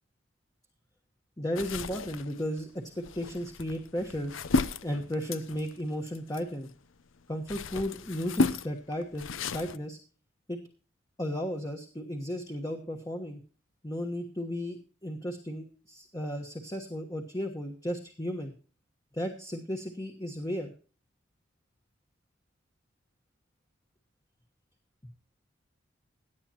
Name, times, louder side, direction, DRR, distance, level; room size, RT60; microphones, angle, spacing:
voice 1, 1.4-2.7 3.0-4.4 4.8-6.7 7.3-10.0 10.5-10.6 11.2-13.4 13.8-18.5 19.1-20.7, equal, 20° left, 2 dB, 1.3 m, -34 dB
sound 1, 1.6-6.8 7.2-9.8, left 3 dB, 80° left, 0.7 m, -33 dB
17.5 x 10.0 x 3.0 m, 0.38 s
head